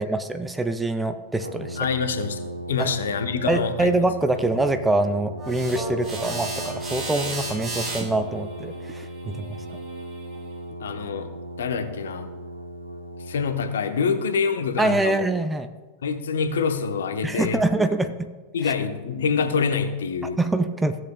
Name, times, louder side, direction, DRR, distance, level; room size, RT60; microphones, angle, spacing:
voice 1, 0.0-1.8 2.8-2.9 3.5-9.6 14.8-15.7 17.2-18.3 18.6-18.7 20.4-21.0, right 2 dB, 10° right, 9 dB, 0.5 m, -24 dB
Brass instrument, 1.4-13.7, right 1 dB, 80° right, 1.1 m, -36 dB
voice 2, 1.8-2.4 2.7-3.9 9.2-9.6 10.8-11.3 11.6-12.3 13.2-15.3 16.0-17.8 18.5-20.4, left 5 dB, 65° left, 8 dB, 0.8 m, -26 dB
sound 1, 5.4-10.6, right 2 dB, 30° right, 2.5 m, -35 dB
16.0 x 7.6 x 2.2 m, 1.2 s
figure-of-eight pair, 90°, 0 cm